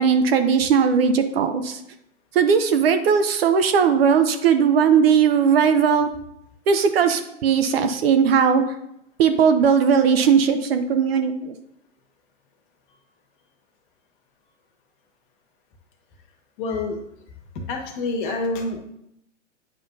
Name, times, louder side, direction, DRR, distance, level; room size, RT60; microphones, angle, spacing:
voice 1, 0.0-1.8 2.3-6.1 6.7-8.6 9.2-11.5, right 6 dB, 50° right, 9 dB, 0.7 m, -18 dB
voice 2, 16.6-17.0 17.5-18.8, left 3 dB, 40° left, 2 dB, 1.6 m, -27 dB
8.5 x 5.4 x 2.7 m, 0.79 s
hypercardioid pair, 135°, 37 cm